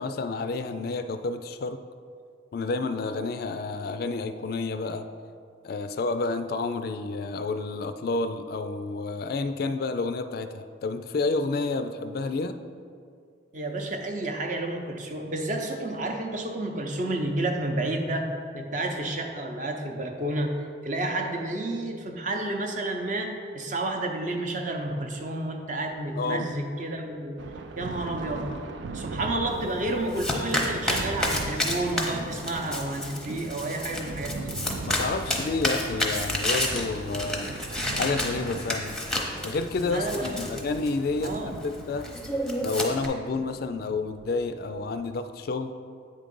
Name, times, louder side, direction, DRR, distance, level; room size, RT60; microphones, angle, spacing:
voice 1, 0.0-1.8 2.5-5.1 5.6-12.6 26.2-26.5 34.9-37.5 37.9-39.0 39.4-42.0 42.6-45.7, left 3 dB, 50° left, 9 dB, 0.3 m, -30 dB
voice 2, 13.5-18.3 18.5-27.4 27.8-28.5 28.9-34.5 39.8-40.6 41.2-41.6, right 2 dB, 40° right, 3 dB, 0.7 m, -30 dB
Thunder, 27.4-45.1, right 3 dB, 70° right, 0.4 m, -40 dB
Domestic sounds home sounds, 29.5-43.1, left 1 dB, 5° left, 0.7 m, -31 dB
8.4 x 3.7 x 5.3 m, 2.2 s
head